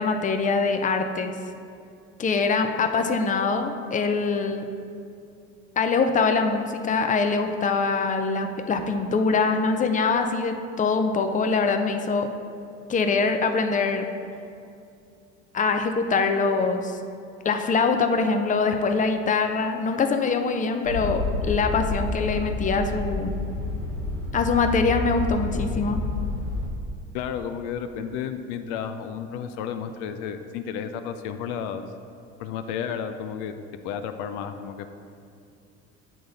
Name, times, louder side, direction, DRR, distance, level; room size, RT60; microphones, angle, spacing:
voice 1, 0.0-1.3 2.2-4.6 5.8-12.3 12.9-14.1 15.5-17.0 17.4-23.3 24.3-26.0, left 4 dB, 20° left, 6 dB, 0.6 m, -23 dB
sound 1, 20.8-26.7, left 2 dB, 90° right, 1.4 m, -29 dB
voice 2, 27.1-31.8 32.4-33.5 33.8-34.9, left 8 dB, 70° left, 8 dB, 0.5 m, -32 dB
8.6 x 3.8 x 4.0 m, 2.5 s
hypercardioid pair, 60°, 37 cm